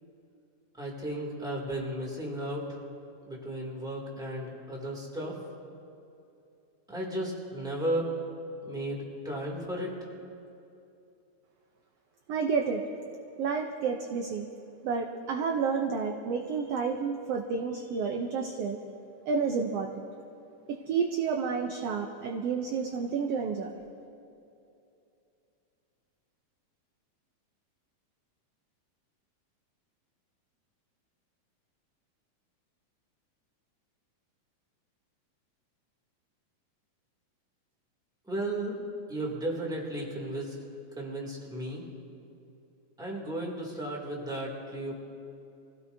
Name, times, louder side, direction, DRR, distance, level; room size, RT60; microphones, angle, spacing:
voice 1, 0.7-2.8 3.2-5.4 6.9-8.1 8.6-10.1 38.3-38.8 39.1-40.6 40.9-41.8 43.0-44.9, right 1 dB, ahead, -2 dB, 1.8 m, -34 dB
voice 2, 12.3-12.8 13.4-14.5 14.8-18.8 19.3-20.0 20.7-23.7, right 5 dB, 80° right, 4 dB, 1.4 m, -30 dB
26.0 x 16.0 x 2.7 m, 2.7 s
omnidirectional pair, 3.6 m